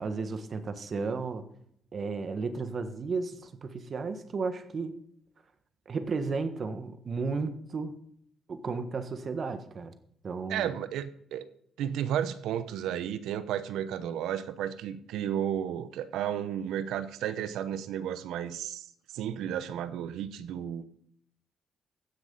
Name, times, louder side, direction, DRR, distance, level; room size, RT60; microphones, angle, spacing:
voice 1, 0.0-1.5 1.9-4.9 5.9-7.9 8.5-9.9 10.2-10.7, right 4 dB, 45° right, 10 dB, 1.4 m, -33 dB
voice 2, 10.5-11.5 11.8-18.9 19.1-20.8, right 10 dB, 85° right, 13 dB, 0.8 m, -33 dB
15.5 x 6.4 x 5.4 m, 0.68 s
cardioid pair, 90°, 0 cm